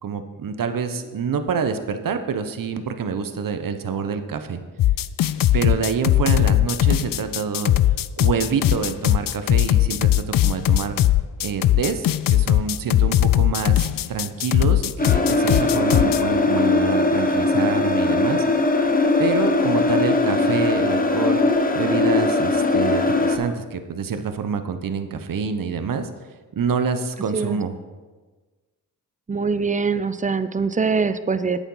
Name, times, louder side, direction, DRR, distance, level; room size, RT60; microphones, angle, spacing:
voice 1, 0.0-4.6 5.5-7.7 8.2-11.0 11.4-18.4 19.2-21.4 21.7-26.1 26.6-27.8, right 6 dB, 55° right, 9 dB, 1.0 m, -27 dB
sound 1, 4.8-16.2, left 13 dB, 55° left, 0.5 m, -19 dB
sound 2, 15.0-23.4, left 2 dB, 20° left, 1.2 m, -20 dB
voice 2, 29.3-31.6, right 5 dB, 20° right, 12 dB, 0.6 m, -23 dB
8.9 x 7.3 x 5.6 m, 1.3 s
supercardioid pair, 50°, 40 cm